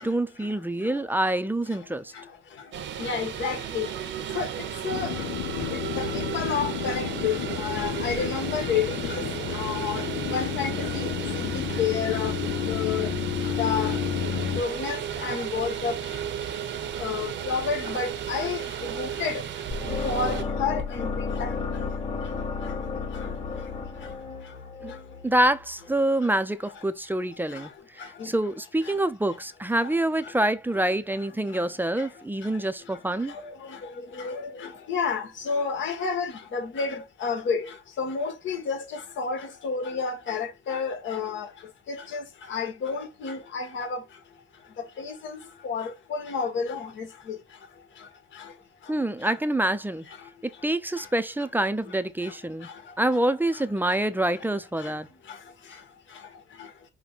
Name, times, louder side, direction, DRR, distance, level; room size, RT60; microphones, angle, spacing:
voice 1, 0.0-2.1 24.8-24.9 25.2-33.3 48.9-50.1 50.6-52.7 53.0-55.1, right 1 dB, 10° right, 0.5 m, -26 dB
sound 1, 2.7-20.4, right 9 dB, 65° right, 0.8 m, -34 dB
voice 2, 3.0-3.9 4.3-4.5 4.8-5.1 6.0-9.2 9.5-10.0 10.3-11.1 11.4-12.3 12.7-13.1 13.6-13.9 14.6-16.0 17.0-18.6 18.9-19.4 20.0-21.1 21.4-21.5 28.2-28.3 34.2-37.7 38.0-41.5 41.9-42.2 42.5-44.0 45.0-45.4 45.6-47.4, left 5 dB, 70° left, 1.5 m, -30 dB
sound 2, 4.9-14.6, left 9 dB, 85° left, 0.6 m, -31 dB
sound 3, 19.7-25.8, left 5 dB, 30° left, 1.7 m, -32 dB
6.0 x 2.2 x 4.0 m
cardioid pair, 90°, 20 cm